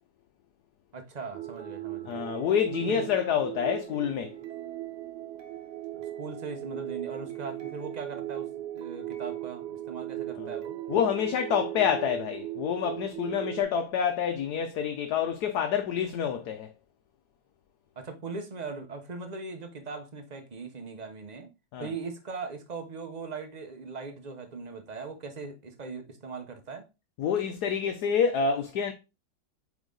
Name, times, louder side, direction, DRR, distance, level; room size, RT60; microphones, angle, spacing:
voice 1, 0.9-2.3 2.9-3.1 5.9-10.7 18.0-21.5 21.8-26.9, right 4 dB, 30° right, 0.9 m, -39 dB
sound 1, 1.3-13.6, right 13 dB, 65° right, 1.4 m, -38 dB
voice 2, 2.1-4.4 10.4-10.5 10.9-16.7 21.7-21.9 27.2-28.9, left 7 dB, 70° left, 1.2 m, -27 dB
8.3 x 3.6 x 3.9 m
omnidirectional pair, 1.9 m